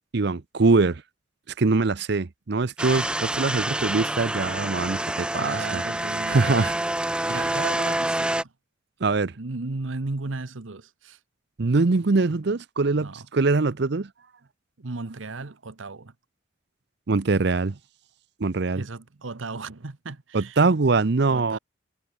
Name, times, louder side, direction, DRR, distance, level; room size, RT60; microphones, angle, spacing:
voice 1, 0.1-1.0 1.6-5.8 6.3-6.7 7.2-7.3 9.0-9.3 11.6-14.1 17.1-17.7 18.4-18.8 20.3-21.6, right 3 dB, 60° right, 0.7 m, -23 dB
sound 1, 2.8-8.4, right 1 dB, 5° right, 0.4 m, -27 dB
voice 2, 5.3-8.5 9.4-11.2 12.9-13.3 14.8-16.1 18.7-20.6 21.3-21.6, right 3 dB, 85° right, 1.1 m, -35 dB
head